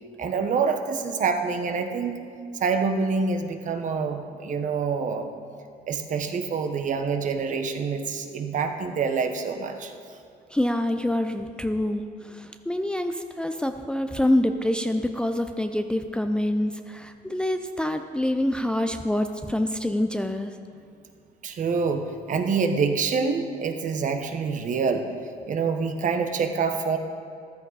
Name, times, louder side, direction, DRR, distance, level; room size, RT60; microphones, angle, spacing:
voice 1, 0.2-2.2 2.6-5.3 5.9-9.9 21.4-25.0 25.5-27.0, right 5 dB, 50° right, 6 dB, 1.2 m, -26 dB
voice 2, 10.5-20.6, left 1 dB, 5° left, 6 dB, 0.5 m, -26 dB
14.0 x 12.5 x 4.2 m, 2.4 s
cardioid pair, 110°, 17 cm